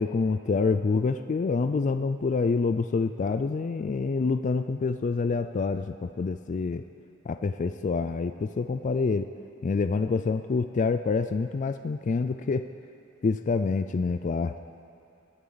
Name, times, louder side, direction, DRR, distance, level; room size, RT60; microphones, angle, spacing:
voice 1, 0.0-6.8 7.3-9.3 9.6-12.7 13.2-14.5, left 4 dB, 40° left, 9 dB, 0.3 m, -27 dB
21.0 x 13.0 x 4.0 m, 2.7 s
head